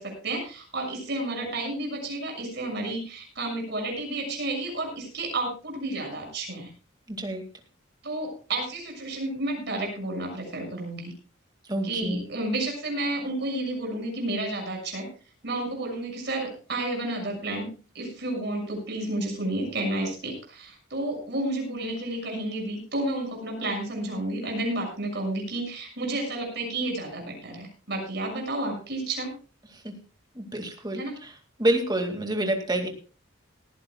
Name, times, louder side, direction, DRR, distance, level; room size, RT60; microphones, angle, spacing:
voice 1, 0.0-6.7 8.0-11.1 11.8-15.1 15.4-17.7 17.9-29.3 30.9-31.2, right 2 dB, 55° right, 1 dB, 6.6 m, -31 dB
voice 2, 7.1-7.4 11.7-12.2 29.8-29.9 30.4-31.3 31.6-32.9, right 1 dB, 20° right, 4 dB, 2.1 m, -27 dB
19.0 x 15.0 x 2.3 m, 0.35 s
head